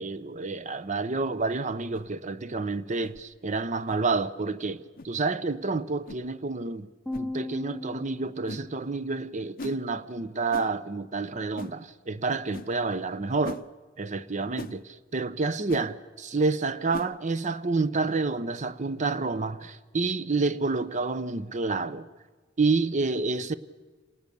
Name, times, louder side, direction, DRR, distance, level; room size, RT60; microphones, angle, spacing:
voice 1, 0.0-6.9 7.1-13.6 14.0-22.1 22.6-23.5, right 3 dB, 40° right, 0.8 m, -29 dB
sound 1, 1.9-2.1 3.0-3.2 3.9-4.0 5.0-5.1 6.1-6.2 7.1-7.3 8.5-8.7 9.6-9.8 10.5-10.7 11.6-11.7 12.5-12.7 13.4-13.6 14.6-14.8 15.7-15.9 16.9-17.1, left 3 dB, 50° left, 0.6 m, -40 dB
sound 2, 7.1-9.5, left 2 dB, ahead, 2.0 m, -38 dB
27.0 x 19.0 x 6.8 m
head